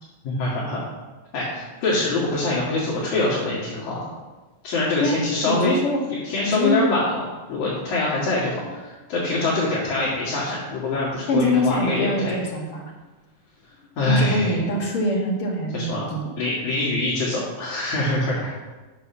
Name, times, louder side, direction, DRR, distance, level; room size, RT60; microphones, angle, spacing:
voice 1, 0.2-0.8 1.3-4.0 4.6-5.8 6.2-7.2 7.5-12.4 14.0-14.6 15.7-18.5, left 2 dB, 75° left, -7 dB, 3.3 m, -24 dB
voice 2, 5.0-6.0 6.5-6.8 11.3-12.9 14.1-16.3 18.4-18.5, left 1 dB, 50° left, -2 dB, 2.3 m, -24 dB
6.8 x 6.5 x 6.9 m, 1.2 s
omnidirectional pair, 3.4 m